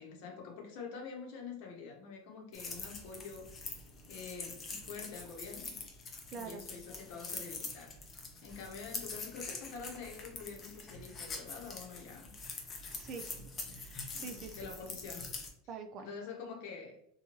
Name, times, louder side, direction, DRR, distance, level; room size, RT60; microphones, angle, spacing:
voice 1, 0.0-3.7 4.1-5.8 6.3-7.9 8.4-12.3 14.1-15.3 16.0-17.0, left 5 dB, 65° left, 1 dB, 0.8 m, -46 dB
sound 1, 2.5-15.5, left 4 dB, 25° left, 0.5 m, -45 dB
voice 2, 6.3-6.6 12.9-13.3 13.7-14.7 15.7-16.1, right 5 dB, 40° right, 7 dB, 0.3 m, -45 dB
2.9 x 2.3 x 2.9 m, 0.75 s
supercardioid pair, 135°, 0 cm